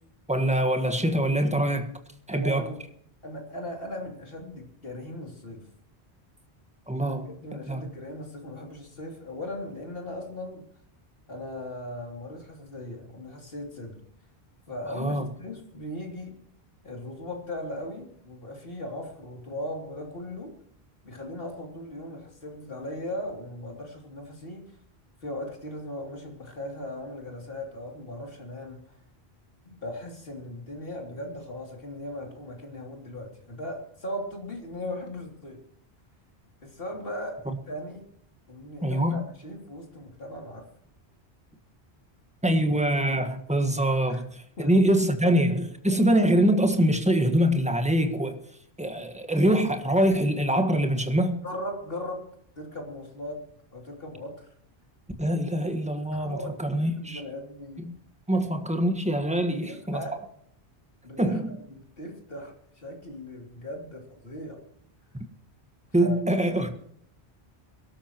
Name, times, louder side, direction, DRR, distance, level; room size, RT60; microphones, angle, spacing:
voice 1, 0.3-2.0 2.3-2.7 6.9-7.3 7.7-7.9 14.9-15.3 38.8-39.3 42.4-48.4 48.8-51.4 55.2-57.2 57.8-58.0 58.3-60.0 61.2-61.6 65.9-66.7, right 1 dB, 5° right, 1.5 m, -24 dB
voice 2, 2.3-2.8 3.2-5.7 7.0-10.7 11.3-14.0 14.7-16.4 16.8-20.6 21.0-24.7 25.2-29.0 29.6-35.6 36.6-38.1 38.5-40.7 44.1-44.2 44.6-45.4 51.4-52.3 52.6-53.4 53.7-54.5 56.1-57.9 58.3-58.5 59.4-60.2 61.0-64.6 66.0-66.2 66.6-66.7, left 1 dB, 60° left, 3.3 m, -38 dB
23.5 x 13.0 x 3.0 m
omnidirectional pair, 1.1 m